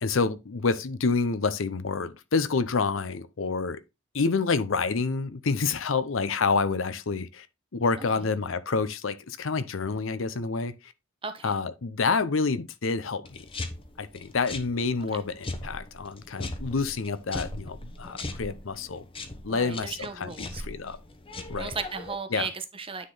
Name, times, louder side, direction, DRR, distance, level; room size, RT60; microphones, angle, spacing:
voice 1, 0.0-3.8 4.1-7.5 7.7-10.9 11.4-13.4 14.0-19.0 19.4-21.0 21.5-21.7 22.3-22.5, left 4 dB, 70° left, 0.7 m, -28 dB
voice 2, 11.2-11.6 19.5-20.6 21.6-23.1, right 5 dB, 25° right, 1.0 m, -36 dB
sound 1, 13.2-22.1, left 2 dB, 25° left, 1.0 m, -39 dB
9.6 x 3.9 x 3.9 m
head